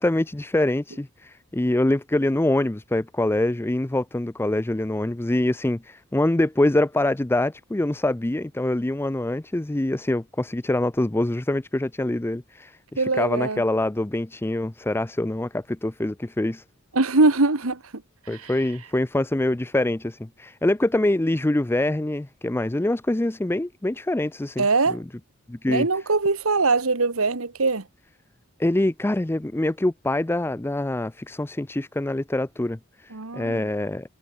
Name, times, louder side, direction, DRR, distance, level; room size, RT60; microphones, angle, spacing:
voice 1, 0.0-16.6 18.3-25.1 25.5-25.9 28.6-34.1, left 1 dB, 10° left, 0.5 m, -25 dB
voice 2, 13.0-13.6 16.9-17.8 18.4-18.5 24.6-25.0 25.7-27.8 33.1-33.6, right 3 dB, 85° right, 1.6 m, -22 dB
head